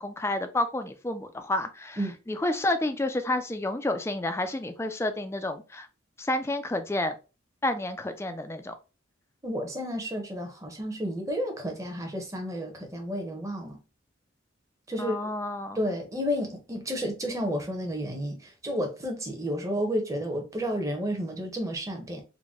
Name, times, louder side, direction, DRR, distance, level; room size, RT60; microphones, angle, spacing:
voice 1, 0.0-5.9 6.2-7.1 7.6-8.7 15.0-15.8, left 1 dB, 15° left, 0.3 m, -30 dB
voice 2, 9.4-13.8 14.9-15.2 15.7-22.2, equal, 15° right, 0.8 m, -31 dB
3.9 x 2.2 x 3.5 m
head